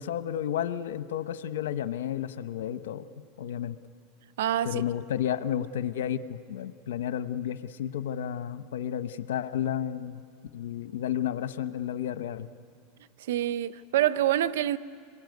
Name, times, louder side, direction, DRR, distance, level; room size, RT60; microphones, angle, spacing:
voice 1, 0.0-3.1 3.4-3.8 4.6-10.2 10.5-12.5, left 10 dB, 85° left, 1.0 m, -32 dB
voice 2, 4.4-4.8 13.3-14.8, right 12 dB, 80° right, 0.7 m, -26 dB
27.0 x 22.5 x 9.4 m
supercardioid pair, 115°, 0 cm